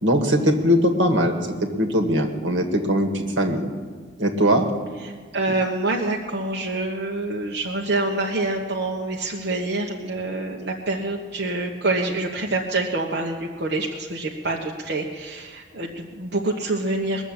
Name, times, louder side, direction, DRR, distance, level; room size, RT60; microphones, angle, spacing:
voice 1, 0.0-3.7 4.2-4.7, equal, 80° right, 3 dB, 1.9 m, -21 dB
voice 2, 5.0-17.3, right 2 dB, 60° right, -2 dB, 1.3 m, -26 dB
21.5 x 7.3 x 8.9 m, 1.5 s
head